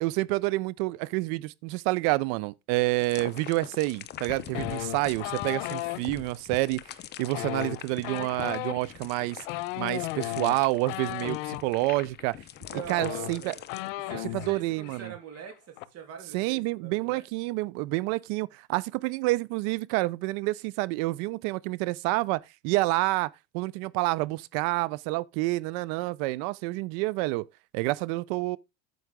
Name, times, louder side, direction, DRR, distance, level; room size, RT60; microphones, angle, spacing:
voice 1, 0.0-6.8 7.2-9.4 9.8-12.4 12.9-13.5 14.3-15.1 16.3-27.5 27.7-28.6, right 21 dB, 65° right, 0.6 m, -28 dB
sound 1, 3.0-13.9, left 11 dB, 30° left, 0.7 m, -44 dB
sound 2, 4.5-6.0 7.2-11.6 12.6-12.7 12.9-14.6 14.8-15.1 15.4-15.8, left 19 dB, 80° left, 0.9 m, -35 dB
voice 2, 12.6-13.6 14.1-17.2, right 7 dB, 40° right, 3.1 m, -43 dB
9.4 x 7.9 x 3.6 m
cardioid pair, 160°, 37 cm